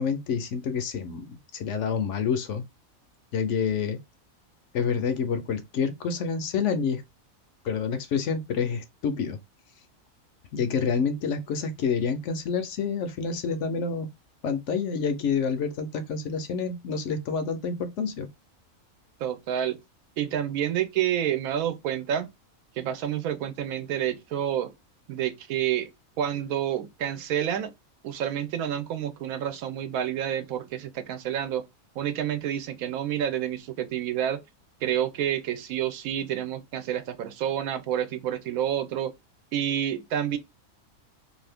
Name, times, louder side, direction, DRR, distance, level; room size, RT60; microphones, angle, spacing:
voice 1, 0.0-2.6 3.3-4.0 4.7-7.0 7.6-9.4 10.5-14.1 14.4-18.3, left 6 dB, 65° left, 0.8 m, -28 dB
voice 2, 19.2-19.8 20.2-22.3 22.8-24.7 25.1-25.9 26.2-27.7 28.0-31.6 32.0-34.4 34.8-39.1 39.5-40.4, right 10 dB, 80° right, 1.0 m, -29 dB
2.7 x 2.5 x 3.3 m
omnidirectional pair, 1.5 m